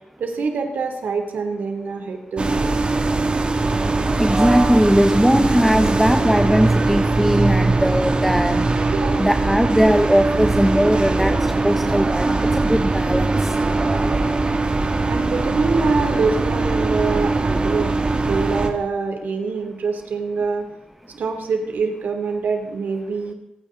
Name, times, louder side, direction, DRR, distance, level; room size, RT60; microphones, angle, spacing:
voice 1, 0.2-2.7 8.9-9.3 15.1-20.7 21.1-23.3, right 4 dB, 90° right, 4 dB, 2.9 m, -25 dB
sound 1, 2.4-18.7, right 3 dB, 40° right, 2.3 m, -20 dB
voice 2, 3.8-8.8 9.2-13.6, equal, ahead, 7 dB, 1.0 m, -19 dB
27.0 x 10.0 x 3.9 m, 0.94 s
cardioid pair, 80°, 3 cm